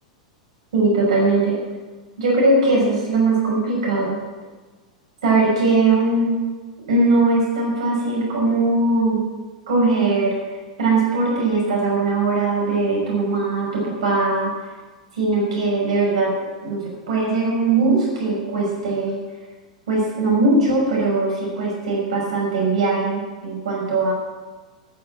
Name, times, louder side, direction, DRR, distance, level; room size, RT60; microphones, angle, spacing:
voice 1, 0.7-1.6 2.2-4.1 5.2-6.3 6.9-9.3 9.7-10.3 10.8-14.5 15.1-16.3 16.6-19.2 19.9-24.1, right 3 dB, 65° right, -3 dB, 6.0 m, -20 dB
12.5 x 9.7 x 7.7 m, 1.3 s
figure-of-eight pair, 95°, 4 cm